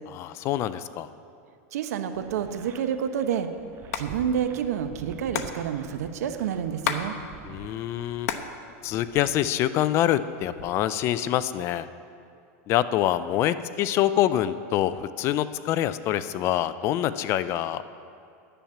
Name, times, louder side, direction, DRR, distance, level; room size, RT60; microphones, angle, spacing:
voice 1, 0.1-1.1 7.4-8.3 8.8-11.9 12.7-17.8, left 12 dB, 35° left, 14 dB, 0.4 m, -25 dB
voice 2, 1.7-3.5 4.0-7.2, right 8 dB, 85° right, 9 dB, 0.9 m, -29 dB
sound 1, 2.1-9.5, right 7 dB, 25° right, 0.6 m, -47 dB
Hands, 3.7-4.1 4.3-4.4 4.6-7.1 7.4-8.5 8.9-9.7 10.2-10.8, left 9 dB, 85° left, 0.9 m, -32 dB
10.0 x 7.2 x 9.1 m, 2.5 s
supercardioid pair, 155°, 8 cm